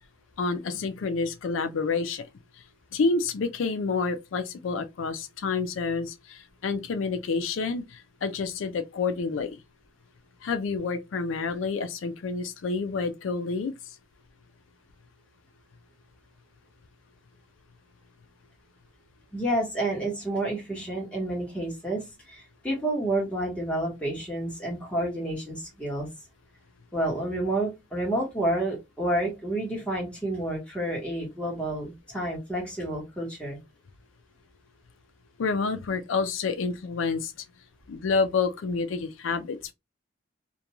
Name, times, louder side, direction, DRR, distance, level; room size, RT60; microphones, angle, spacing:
voice 1, 0.4-2.2 2.9-9.6 10.4-13.7 35.4-37.3 37.9-39.7, left 4 dB, 80° left, 0.4 m, -28 dB
voice 2, 19.3-26.1 26.9-33.6, right 1 dB, 5° left, 1.1 m, -29 dB
2.5 x 2.2 x 2.9 m
head